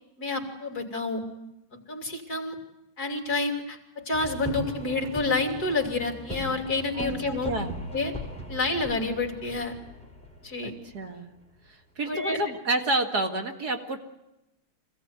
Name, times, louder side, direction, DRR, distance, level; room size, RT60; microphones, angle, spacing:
voice 1, 0.2-1.2 1.9-2.6 3.0-7.5 7.9-8.1 8.5-9.7 10.4-10.7 12.1-12.4, left 3 dB, 45° left, 3 dB, 3.6 m, -29 dB
sound 1, 4.1-11.6, left 1 dB, 5° left, 4.1 m, -39 dB
voice 2, 7.0-7.8 10.6-11.3 11.7-14.1, right 2 dB, 50° right, 4 dB, 2.4 m, -29 dB
25.5 x 17.0 x 9.6 m, 0.92 s
omnidirectional pair, 2.2 m